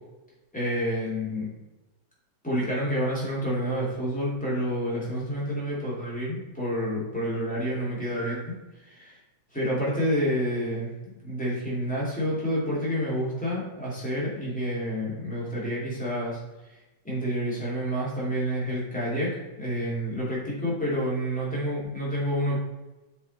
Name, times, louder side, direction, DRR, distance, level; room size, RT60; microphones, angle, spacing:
voice 1, 0.5-1.5 2.4-8.6 8.8-9.2 9.5-10.9 11.2-16.4 16.7-16.8 17.0-22.6, equal, 5° left, -7 dB, 2.6 m, -29 dB
7.5 x 4.8 x 4.2 m, 1.1 s
omnidirectional pair, 1.9 m